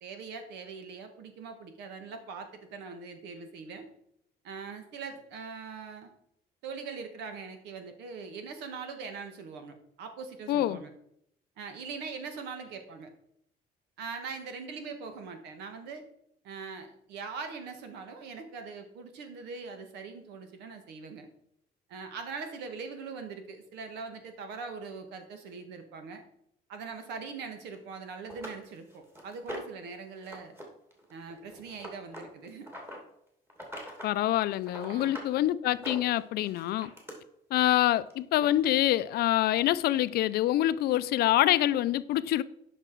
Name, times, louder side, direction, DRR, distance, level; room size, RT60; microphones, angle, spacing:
voice 1, 0.0-3.9 4.4-6.1 6.6-10.9 11.6-13.1 14.0-16.0 16.4-21.3 21.9-26.2 26.7-30.6 31.1-32.7 34.8-35.2, right 5 dB, 85° right, 1.5 m, -42 dB
voice 2, 10.5-10.8 34.0-36.9 37.5-42.4, left 13 dB, 70° left, 0.5 m, -26 dB
sound 1, 27.7-27.8 28.3-29.8 30.2-30.6 30.9-33.0 33.5-34.1 34.5-35.3 35.7-37.1 38.1-38.2 38.6-38.7, equal, 15° right, 2.5 m, -43 dB
9.8 x 5.8 x 4.6 m
cardioid pair, 110°, 17 cm